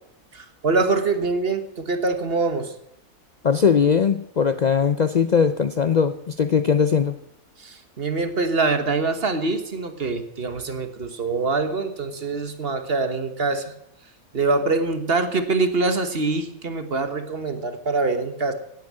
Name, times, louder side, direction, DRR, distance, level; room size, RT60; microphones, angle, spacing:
voice 1, 0.3-2.7 7.6-13.7 14.3-18.5, right 3 dB, 40° right, 8 dB, 1.5 m, -24 dB
voice 2, 3.4-7.1, left 6 dB, 85° left, 10 dB, 0.3 m, -20 dB
17.0 x 9.2 x 7.6 m, 0.75 s
omnidirectional pair, 1.6 m